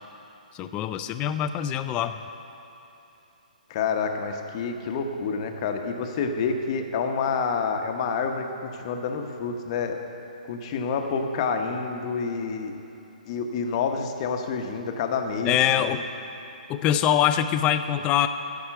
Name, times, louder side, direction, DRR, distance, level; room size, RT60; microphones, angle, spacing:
voice 1, 0.5-2.1 15.5-16.0 16.7-18.3, left 10 dB, 20° left, 9 dB, 0.4 m, -23 dB
voice 2, 3.7-10.0 10.5-12.7 13.3-16.0, left 5 dB, 40° left, 4 dB, 1.0 m, -28 dB
14.0 x 4.8 x 7.8 m, 2.9 s
figure-of-eight pair, 135°, 5 cm